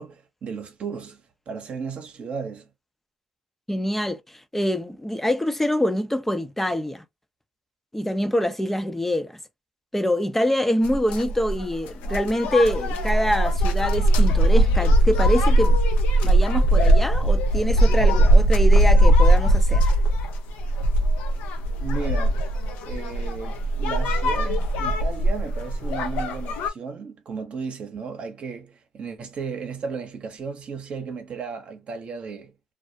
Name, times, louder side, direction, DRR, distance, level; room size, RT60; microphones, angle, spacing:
voice 1, 0.0-2.7 21.8-22.4 22.8-32.5, right 5 dB, 55° right, 0.8 m, -34 dB
voice 2, 3.7-7.0 7.9-9.3 9.9-15.8 16.2-19.9, left 1 dB, 10° left, 0.5 m, -25 dB
sound 1, 10.8-26.7, right 1 dB, 80° left, 0.5 m, -20 dB
2.3 x 2.0 x 2.5 m
supercardioid pair, 65°, 3 cm